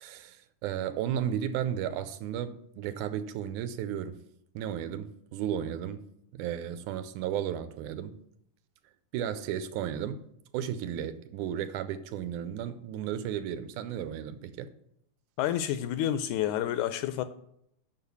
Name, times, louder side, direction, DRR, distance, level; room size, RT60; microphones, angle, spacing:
voice 1, 0.0-4.2 4.6-6.0 6.3-8.2 9.1-10.2 10.5-14.7, right 9 dB, 80° right, 2.0 m, -34 dB
voice 2, 15.4-17.2, left 11 dB, 80° left, 1.8 m, -29 dB
6.6 x 5.7 x 6.9 m
omnidirectional pair, 3.7 m